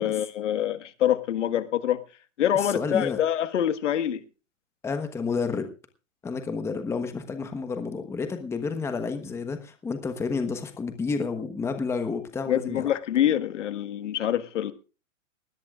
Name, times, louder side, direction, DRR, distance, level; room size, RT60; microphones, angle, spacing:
voice 1, 0.0-2.0 2.4-4.2 12.5-14.7, left 10 dB, 65° left, 1.7 m, -25 dB
voice 2, 2.5-3.2 4.8-5.7 6.2-12.9, left 4 dB, 5° left, 1.1 m, -30 dB
19.5 x 18.0 x 2.5 m
hypercardioid pair, 150°, 40 cm